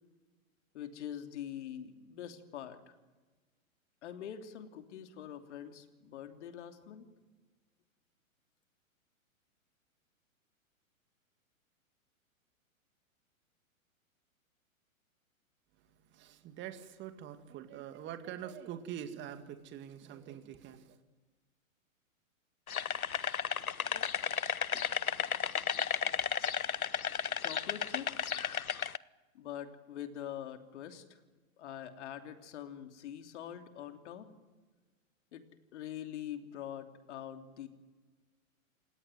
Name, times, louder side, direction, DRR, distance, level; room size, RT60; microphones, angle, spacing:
voice 1, 0.7-3.0 4.0-7.1 27.4-28.4 29.3-31.2 31.6-34.3 35.3-35.5 35.7-37.7, left 10 dB, 55° left, 6 dB, 3.1 m, -44 dB
voice 2, 15.7-21.0, right 10 dB, 25° right, 8 dB, 2.1 m, -45 dB
sound 1, 22.7-29.0, left 7 dB, 85° left, 0.9 m, -33 dB
28.5 x 18.0 x 9.3 m, 1.3 s
figure-of-eight pair, 115°, 41 cm